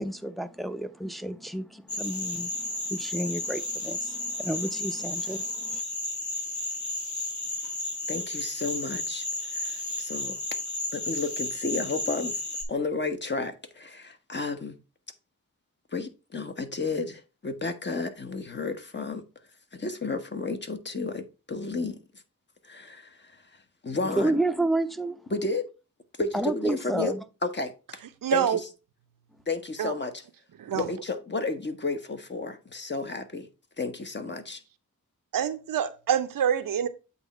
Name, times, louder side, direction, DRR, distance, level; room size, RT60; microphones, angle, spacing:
voice 1, 0.0-5.8 24.0-25.2 26.3-27.2, right 1 dB, ahead, 0.7 m, -30 dB
sound 1, 1.9-12.6, left 2 dB, 60° left, 2.8 m, -33 dB
voice 2, 8.1-9.2 9.5-10.4 10.9-12.4 12.7-14.8 15.9-19.2 19.7-22.0 22.6-23.4 23.8-24.4 25.3-25.7 26.2-27.1 27.4-27.7 28.3-28.6 29.5-30.2 30.7-33.5 33.8-34.6, left 3 dB, 35° left, 1.1 m, -32 dB
voice 3, 28.2-28.6 29.8-29.9 30.6-30.9 35.3-36.9, right 9 dB, 80° right, 0.7 m, -26 dB
8.1 x 3.0 x 5.4 m
cardioid pair, 70°, 33 cm